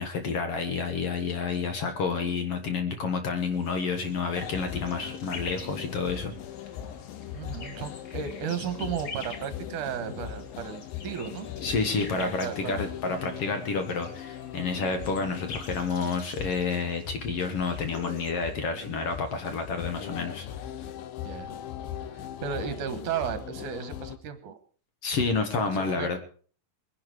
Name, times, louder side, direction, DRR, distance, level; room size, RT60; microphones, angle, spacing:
voice 1, 0.0-6.3 11.6-20.5 20.8-20.9 25.0-26.2, left 4 dB, 55° left, 7 dB, 2.0 m, -29 dB
sound 1, 3.5-18.3, left 4 dB, 40° left, 1.7 m, -47 dB
sound 2, 4.3-24.2, left 10 dB, 85° left, 2.6 m, -40 dB
voice 2, 7.3-11.5 11.9-12.8 21.2-21.5 22.1-24.6 25.7-26.2, right 8 dB, 70° right, 10 dB, 2.6 m, -34 dB
21.5 x 10.5 x 4.7 m, 0.43 s
omnidirectional pair, 3.9 m